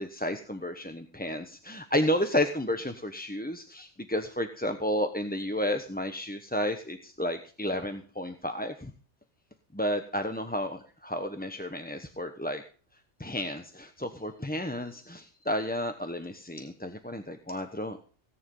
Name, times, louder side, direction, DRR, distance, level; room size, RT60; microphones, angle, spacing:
voice 1, 0.0-8.9 9.7-12.6 13.2-18.0, left 1 dB, 10° left, 7 dB, 0.9 m, -32 dB
17.5 x 9.7 x 5.5 m, 0.39 s
omnidirectional pair, 1.2 m